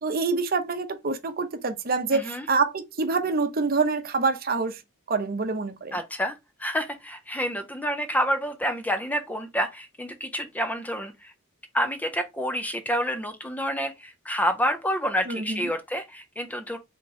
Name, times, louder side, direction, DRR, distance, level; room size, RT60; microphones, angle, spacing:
voice 1, 0.0-4.8 5.1-6.0 15.3-15.7, right 4 dB, 45° right, 0.7 m, -26 dB
voice 2, 2.1-2.5 5.9-11.3 11.7-16.8, equal, 5° left, 0.4 m, -28 dB
4.3 x 3.6 x 3.0 m
head